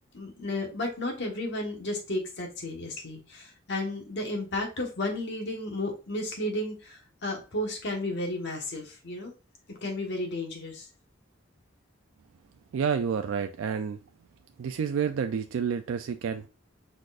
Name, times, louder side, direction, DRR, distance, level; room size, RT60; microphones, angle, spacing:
voice 1, 0.1-9.3 9.7-10.9, left 1 dB, 60° left, 1 dB, 1.4 m, -33 dB
voice 2, 12.7-14.0 14.6-16.5, right 7 dB, 75° right, 7 dB, 0.3 m, -29 dB
4.8 x 4.1 x 2.4 m, 0.33 s
head